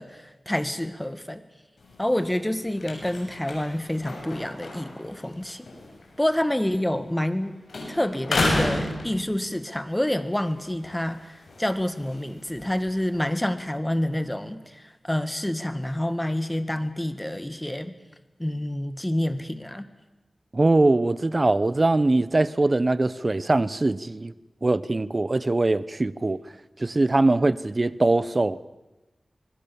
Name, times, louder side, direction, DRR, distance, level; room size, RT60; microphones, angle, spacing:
voice 1, 0.0-1.4 2.0-5.7 6.2-7.6 7.9-18.0 18.4-19.9, left 1 dB, 15° left, 11 dB, 1.9 m, -28 dB
sound 1, 1.8-7.4 7.7-9.7 10.2-13.3, left 2 dB, 85° left, 6.9 m, -33 dB
voice 2, 20.5-24.3 24.6-26.4 26.8-28.7, right 2 dB, 40° right, 17 dB, 0.9 m, -22 dB
26.0 x 21.0 x 7.1 m, 1.0 s
wide cardioid pair, 65°, 0 cm